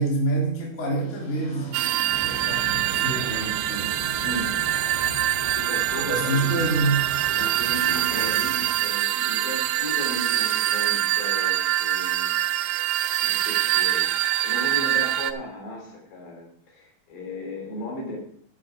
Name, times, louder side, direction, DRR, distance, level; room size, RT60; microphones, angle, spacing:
voice 1, 0.0-4.0 5.9-7.0, right 2 dB, 20° left, -2 dB, 3.0 m, -27 dB
sound 1, 1.0-7.0, right 3 dB, 40° left, 3.8 m, -44 dB
sound 2, 1.7-15.3, right 13 dB, 75° right, 2.1 m, -24 dB
sound 3, 2.1-8.9, right 1 dB, 20° right, 0.9 m, -38 dB
voice 2, 4.2-4.5 5.4-6.5 7.3-12.6 13.2-18.2, left 1 dB, 80° left, 0 dB, 5.2 m, -36 dB
12.5 x 7.5 x 4.9 m, 0.68 s
omnidirectional pair, 4.3 m